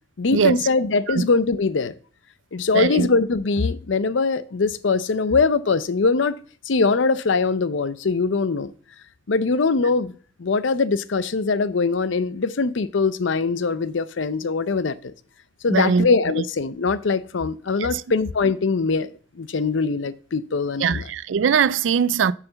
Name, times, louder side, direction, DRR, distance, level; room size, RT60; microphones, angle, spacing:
voice 1, 0.2-1.9 2.5-6.4 6.7-8.7 9.3-10.1 10.4-15.1 15.6-19.1 19.4-21.0, left 4 dB, 85° left, 0.6 m, -22 dB
voice 2, 2.7-3.1 15.7-16.1 16.4-16.5 17.8-18.0 20.8-22.3, right 6 dB, 85° right, 0.4 m, -21 dB
6.8 x 5.8 x 6.9 m
head